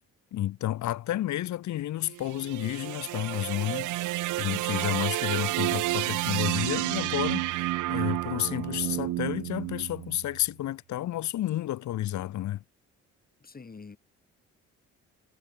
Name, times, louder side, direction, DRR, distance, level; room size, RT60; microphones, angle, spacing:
voice 1, 0.3-4.0 4.4-12.6, left 13 dB, 70° left, 1.1 m, -31 dB
sound 1, 2.1-10.4, right 17 dB, 80° right, 0.7 m, -30 dB
voice 2, 13.4-14.0, left 4 dB, 30° left, 3.2 m, -45 dB
cardioid pair, 90°, 30 cm